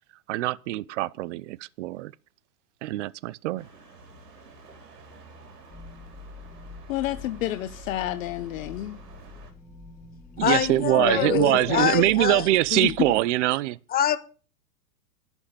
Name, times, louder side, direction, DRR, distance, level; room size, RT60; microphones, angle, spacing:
voice 1, 0.3-2.1 2.8-3.7 10.4-13.8, right 17 dB, 50° right, 0.7 m, -23 dB
sound 1, 3.6-9.5, right 4 dB, 80° right, 4.1 m, -49 dB
sound 2, 5.7-13.2, left 4 dB, 5° left, 2.3 m, -46 dB
voice 2, 6.9-9.0 11.0-11.9 12.7-12.9, left 14 dB, 55° left, 1.0 m, -30 dB
voice 3, 10.4-12.4 13.9-14.2, left 10 dB, 20° left, 1.1 m, -24 dB
11.5 x 6.4 x 9.0 m
hypercardioid pair, 135°, 47 cm